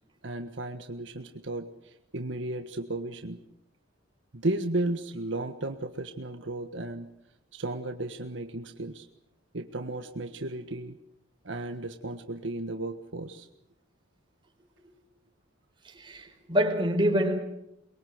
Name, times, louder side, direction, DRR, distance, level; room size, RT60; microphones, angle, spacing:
voice 1, 0.2-3.4 4.3-7.1 7.5-9.1 9.5-11.0 11.4-13.5, right 2 dB, 75° right, 1.5 m, -34 dB
voice 2, 15.8-17.4, equal, 25° right, 4.7 m, -26 dB
23.5 x 22.5 x 8.0 m
head